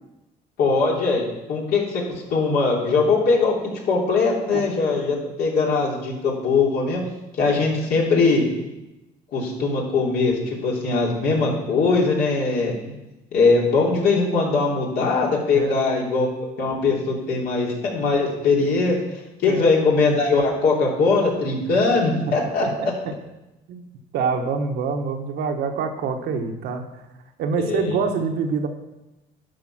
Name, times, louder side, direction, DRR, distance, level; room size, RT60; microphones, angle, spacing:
voice 1, 0.6-2.0 2.3-3.5 3.9-7.0 7.4-8.4 9.3-12.7 13.3-16.3 16.6-19.0 19.4-22.7 27.6-28.0, left 4 dB, 65° left, -2 dB, 3.1 m, -21 dB
voice 2, 15.5-15.9 19.5-19.6 22.6-23.1 23.7-26.9 27.4-28.7, right 5 dB, 75° right, 4 dB, 1.3 m, -26 dB
11.5 x 5.1 x 6.0 m, 0.98 s
cardioid pair, 110°, 17 cm